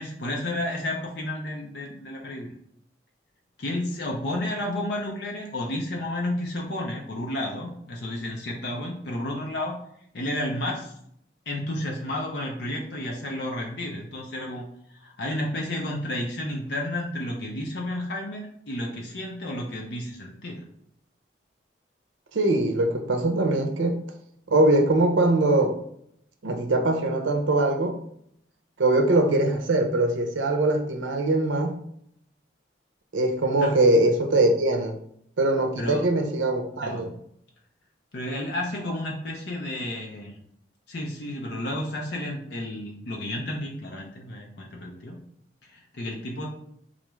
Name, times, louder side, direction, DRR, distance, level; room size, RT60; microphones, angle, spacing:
voice 1, 0.0-2.5 3.6-9.8 10.1-10.9 11.5-14.6 14.9-20.6 33.6-33.8 35.8-36.1 36.8-37.1 38.1-40.4 40.9-45.2 45.6-46.5, left 1 dB, 65° left, -1 dB, 0.6 m, -31 dB
voice 2, 22.3-24.0 24.5-25.8 26.4-28.0 28.8-31.8 33.1-35.0 35.4-37.1, right 2 dB, 85° right, 4 dB, 0.6 m, -22 dB
3.8 x 2.3 x 3.0 m, 0.69 s
head